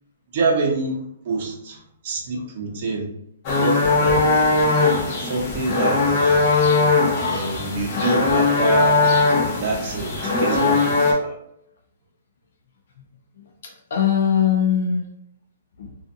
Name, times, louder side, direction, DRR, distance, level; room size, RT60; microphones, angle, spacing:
voice 1, 0.3-3.1 3.6-4.2 5.2-6.4 7.2-9.0 9.4-11.4, right 3 dB, 45° right, -1 dB, 0.8 m, -26 dB
sound 1, 3.4-11.1, left 3 dB, 35° left, 0.8 m, -19 dB
voice 2, 13.4-15.1 15.8-16.0, left 8 dB, 70° left, 1 dB, 0.5 m, -22 dB
2.5 x 2.4 x 2.6 m, 0.74 s
hypercardioid pair, 155°, 0 cm